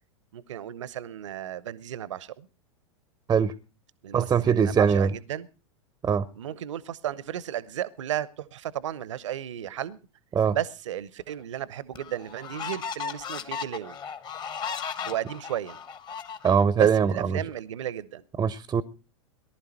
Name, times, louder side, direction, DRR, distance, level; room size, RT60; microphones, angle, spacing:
voice 1, 0.3-2.5 4.0-5.5 6.3-10.0 10.5-14.0 15.1-15.8 16.8-18.2, right 11 dB, 65° right, 0.9 m, -34 dB
voice 2, 4.1-5.1 6.0-6.3 10.3-10.6 16.4-17.4 18.4-18.8, right 7 dB, 20° right, 0.8 m, -22 dB
sound 1, 11.3-11.4 12.0-16.9, left 6 dB, 25° left, 1.4 m, -36 dB
19.0 x 11.5 x 4.3 m
figure-of-eight pair, 90°, 17 cm